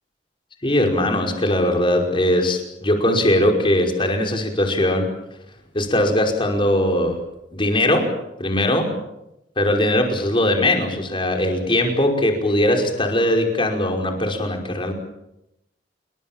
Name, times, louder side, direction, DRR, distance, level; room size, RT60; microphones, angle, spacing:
voice 1, 0.6-5.1 5.7-7.2 7.5-8.1 8.4-8.9 9.6-14.9, left 1 dB, 30° left, 3 dB, 5.3 m, -20 dB
28.5 x 24.0 x 7.6 m, 0.88 s
head